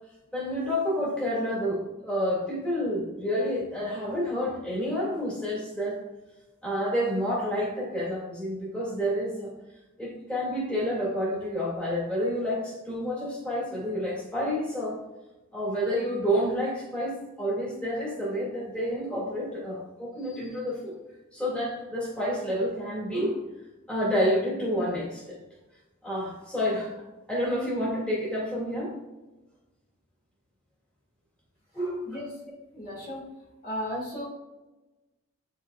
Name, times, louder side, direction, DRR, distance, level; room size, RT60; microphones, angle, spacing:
voice 1, 0.3-6.0 6.6-9.5 10.0-15.0 15.5-21.0 21.3-23.4 23.9-25.2 26.0-26.9 27.3-28.9 31.7-32.1, equal, 5° left, -7 dB, 2.1 m, -29 dB
voice 2, 32.7-33.2 33.6-34.2, equal, 45° left, -5 dB, 2.2 m, -34 dB
10.5 x 4.1 x 2.4 m, 1.1 s
head